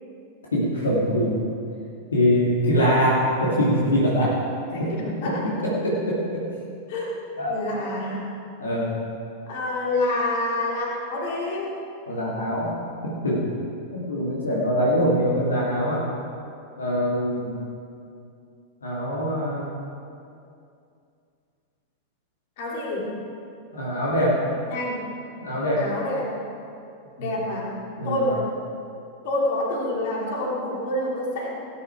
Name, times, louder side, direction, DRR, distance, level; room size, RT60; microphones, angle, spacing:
voice 1, 0.5-1.4 2.1-4.4 4.8-4.9 5.4-6.4 7.4-7.6 8.6-9.0 12.1-12.7 13.0-13.5 13.9-16.1 16.8-17.6 18.8-19.7 23.0-23.2 23.7-24.4 25.4-25.8 27.2-27.3 28.0-28.2, equal, 70° left, -5 dB, 2.4 m, -23 dB
voice 2, 4.7-5.6 6.9-7.1 7.5-8.3 9.5-11.7 22.6-23.1 24.7-25.1 25.8-26.4 27.2-27.7 28.0-28.5 29.2-31.5, left 1 dB, 50° left, -3 dB, 3.0 m, -27 dB
18.5 x 10.0 x 4.7 m, 2.5 s
figure-of-eight pair, 90°, 0 cm